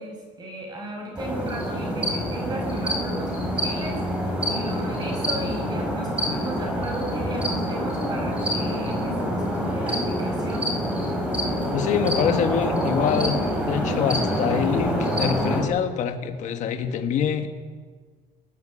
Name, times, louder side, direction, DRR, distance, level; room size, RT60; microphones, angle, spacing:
voice 1, 0.0-4.0 4.5-10.7, right 2 dB, 25° right, 1 dB, 6.2 m, -35 dB
sound 1, 1.2-15.6, equal, 10° right, 4.9 m, -26 dB
voice 2, 11.7-13.4 13.7-17.5, left 8 dB, 50° left, 7 dB, 1.4 m, -25 dB
21.5 x 13.5 x 9.9 m, 1.6 s
cardioid pair, 175°, 16 cm